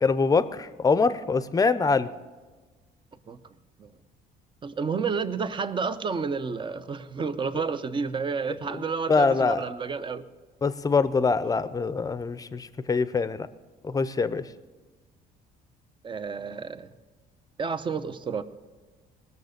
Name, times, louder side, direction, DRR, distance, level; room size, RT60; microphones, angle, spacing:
voice 1, 0.0-2.1 8.7-9.6 10.6-13.5 13.8-14.5, left 4 dB, 20° left, 14 dB, 0.6 m, -24 dB
voice 2, 4.6-10.2 16.0-16.9 17.6-18.4, right 5 dB, 30° right, 12 dB, 0.8 m, -30 dB
19.5 x 6.7 x 6.6 m, 1.3 s
cardioid pair, 110°, 17 cm